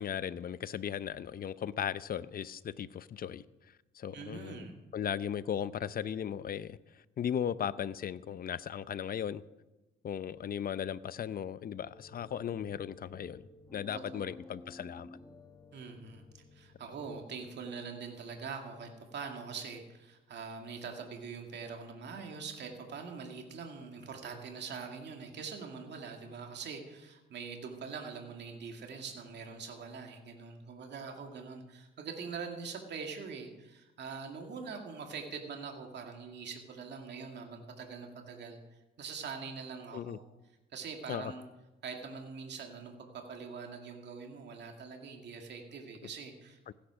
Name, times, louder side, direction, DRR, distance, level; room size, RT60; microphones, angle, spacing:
voice 1, 0.0-3.4 3.9-4.7 4.9-9.4 10.0-15.1 39.9-40.2 41.1-41.3 46.7-46.8, left 9 dB, 50° left, 16 dB, 0.6 m, -37 dB
voice 2, 4.1-4.7 13.9-14.3 15.7-38.6 39.0-40.2 40.7-41.4 41.8-46.7, right 5 dB, 60° right, 3 dB, 2.3 m, -43 dB
sound 1, 11.9-17.2, left 2 dB, 15° left, 1.2 m, -54 dB
16.0 x 10.0 x 6.2 m, 1.1 s
cardioid pair, 90°, 20 cm